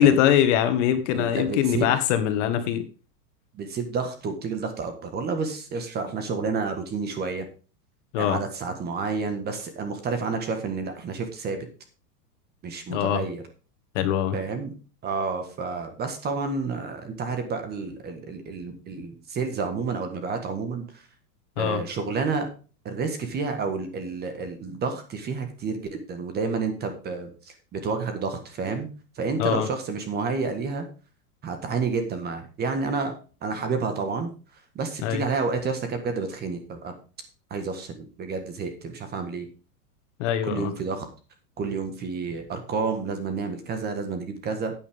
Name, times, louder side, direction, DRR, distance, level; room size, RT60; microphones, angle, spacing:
voice 1, 0.0-2.8 8.1-8.4 12.9-13.2 14.0-14.4 21.6-21.8 29.4-29.7 35.0-35.3 40.2-40.7, left 10 dB, 50° left, 9 dB, 1.8 m, -22 dB
voice 2, 1.1-1.9 3.5-7.5 8.2-11.7 12.6-13.4 14.3-14.7 15.0-21.1 21.6-22.5 22.8-28.9 29.1-30.8 31.4-33.1 33.4-34.3 34.7-36.9 37.5-39.5 40.4-41.1 41.6-44.7, right 4 dB, 20° right, 8 dB, 1.6 m, -30 dB
10.5 x 9.2 x 3.6 m, 0.35 s
supercardioid pair, 155°, 48 cm